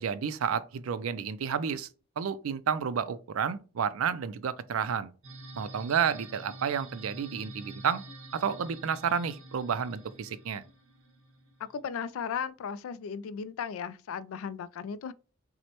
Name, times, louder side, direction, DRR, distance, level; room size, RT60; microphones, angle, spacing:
voice 1, 0.0-1.9 2.2-5.1 5.6-8.0 8.3-10.6, right 7 dB, 85° right, 0.4 m, -31 dB
sound 1, 5.2-11.8, right 2 dB, 70° right, 1.2 m, -47 dB
voice 2, 11.6-15.1, left 7 dB, 85° left, 0.3 m, -36 dB
6.0 x 2.1 x 2.9 m
head